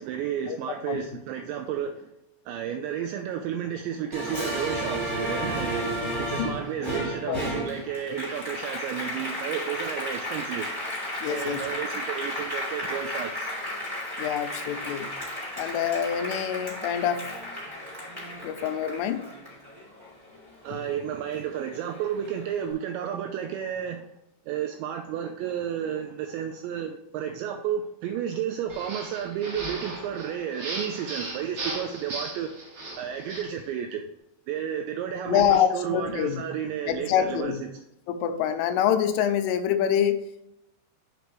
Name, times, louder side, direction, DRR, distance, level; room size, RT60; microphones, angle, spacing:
voice 1, 0.0-2.1 2.5-10.7 11.2-13.5 20.6-24.1 24.5-32.5 33.0-34.0 34.5-37.6, right 9 dB, 90° right, 2.5 m, -32 dB
Applause, 4.1-20.9 21.3-22.5, equal, 10° right, 1.5 m, -33 dB
voice 2, 11.2-11.7 14.2-15.1 15.6-17.3 18.4-19.3 20.7-20.8 35.3-36.4 36.9-37.6 38.1-40.5, left 9 dB, 85° left, 3.2 m, -26 dB
sound 1, 28.7-33.6, right 2 dB, 60° right, 1.5 m, -37 dB
8.3 x 6.0 x 3.1 m
omnidirectional pair, 5.7 m